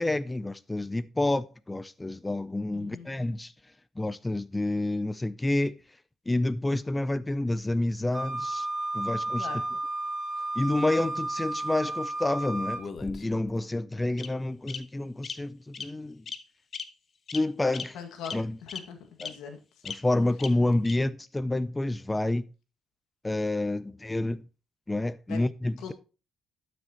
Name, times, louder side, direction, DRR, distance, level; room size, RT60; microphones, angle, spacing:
voice 1, 0.0-3.5 4.0-5.7 6.3-8.7 8.9-9.5 10.6-16.2 17.3-18.0 18.3-18.6 19.2-19.3 19.9-22.4 23.2-24.4 24.9-25.9, left 2 dB, 15° left, 0.5 m, -29 dB
voice 2, 2.7-3.1 9.4-9.7 17.9-18.3 18.6-19.6 25.3-25.4 25.8-25.9, left 7 dB, 85° left, 1.9 m, -40 dB
Wind instrument woodwind instrument, 8.1-12.8, right 2 dB, 20° right, 3.1 m, -32 dB
Bird vocalization bird call bird song, 12.8-13.5 14.2-14.3 14.7-14.8 15.2-15.3 15.7-15.9 16.3-16.4 16.7-16.8 17.3-17.4 17.7-17.8 18.2-18.3 18.7-18.8 19.2-19.3 19.9-20.0 20.4-20.5 20.8-20.9, left 6 dB, 50° left, 1.0 m, -36 dB
12.0 x 6.2 x 2.9 m
cardioid pair, 90°, 0 cm